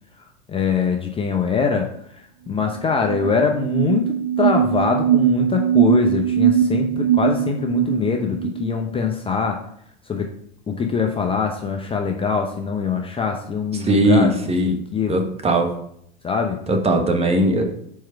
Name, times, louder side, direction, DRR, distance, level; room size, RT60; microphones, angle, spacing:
voice 1, 0.2-9.6 10.1-10.2 10.7-15.2 16.2-16.6, left 5 dB, 15° left, 2 dB, 0.7 m, -23 dB
sound 1, 2.6-2.7 2.9-8.7, right 9 dB, 55° right, 0.6 m, -20 dB
voice 2, 13.8-14.8 15.1-15.7 16.7-17.6, right 1 dB, 20° right, 4 dB, 1.2 m, -19 dB
4.7 x 4.4 x 5.7 m, 0.69 s
hypercardioid pair, 100°, 32 cm